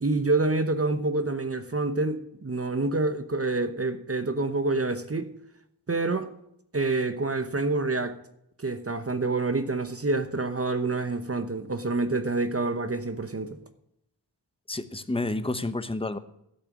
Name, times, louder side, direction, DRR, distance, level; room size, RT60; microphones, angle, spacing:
voice 1, 0.0-5.3 5.9-6.3 6.7-8.1 8.6-13.6, right 3 dB, 35° right, 0.9 m, -27 dB
voice 2, 14.7-16.2, left 2 dB, 15° left, 0.9 m, -30 dB
12.0 x 6.6 x 8.4 m
wide cardioid pair, 80°, 43 cm